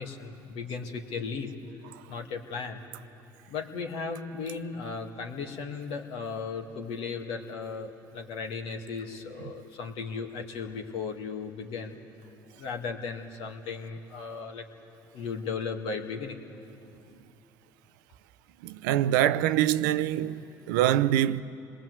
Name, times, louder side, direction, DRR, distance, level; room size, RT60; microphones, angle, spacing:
voice 1, 0.0-1.5 2.1-2.8 3.5-12.0 12.6-14.7 15.1-16.4, left 5 dB, 70° left, 2.3 m, -36 dB
voice 2, 18.6-21.4, right 12 dB, 80° right, 0.7 m, -24 dB
27.5 x 21.5 x 8.1 m
hypercardioid pair, 65°, 10 cm